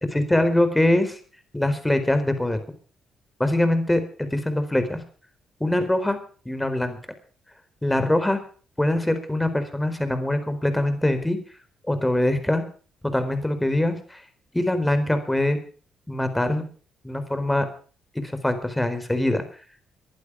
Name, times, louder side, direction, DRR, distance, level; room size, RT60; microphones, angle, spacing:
voice 1, 0.1-1.2 1.5-2.6 3.4-5.0 5.6-6.2 6.5-7.0 7.8-8.4 8.8-11.4 11.9-12.6 13.1-14.2 14.5-15.6 16.1-16.6 17.0-17.7 18.1-19.4, left 1 dB, 10° left, 9 dB, 4.3 m, -23 dB
20.5 x 11.5 x 4.9 m, 0.41 s
cardioid pair, 90°, 0 cm